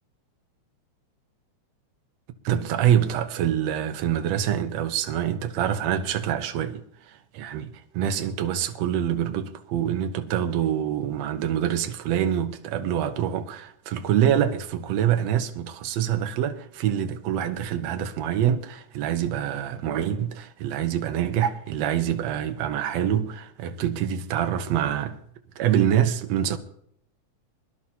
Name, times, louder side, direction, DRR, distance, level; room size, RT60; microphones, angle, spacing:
voice 1, 2.4-7.7 7.9-25.2 25.6-26.6, right 10 dB, 70° right, 2.1 m, -25 dB
23.0 x 11.5 x 2.9 m
omnidirectional pair, 3.3 m